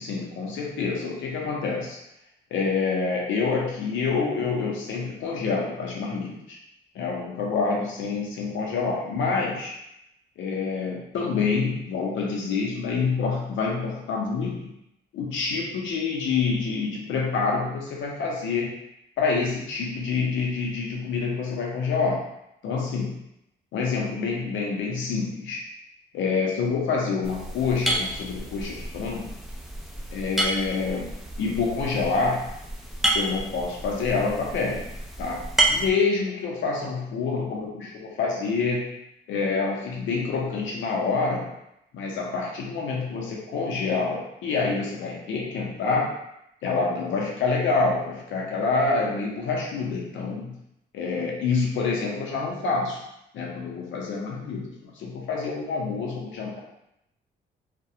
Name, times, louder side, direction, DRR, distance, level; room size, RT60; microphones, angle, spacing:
voice 1, 0.0-2.0 2.5-6.6 6.9-9.7 10.4-14.6 15.1-18.7 19.2-22.2 22.6-23.1 23.7-25.6 26.1-29.3 30.1-31.1 31.4-32.5 33.1-34.9 35.2-38.9 39.3-41.5 41.9-46.1 46.6-50.5 50.9-53.0 53.3-56.6, left 4 dB, 75° left, -2 dB, 0.6 m, -27 dB
sound 1, 27.2-35.9, right 1 dB, ahead, 0.3 m, -30 dB
2.2 x 2.1 x 2.7 m, 0.82 s
cardioid pair, 90°, 20 cm